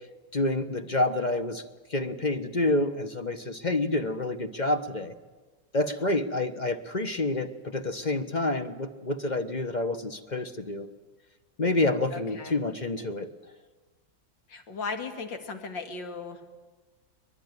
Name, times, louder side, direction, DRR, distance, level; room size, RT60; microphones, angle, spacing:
voice 1, 0.3-1.6 1.9-5.1 5.7-10.9 11.6-13.3, left 2 dB, 30° left, 9 dB, 0.9 m, -28 dB
voice 2, 12.1-12.6 14.5-16.4, left 4 dB, 75° left, 6 dB, 2.8 m, -36 dB
24.0 x 20.0 x 9.6 m, 1.3 s
omnidirectional pair, 2.1 m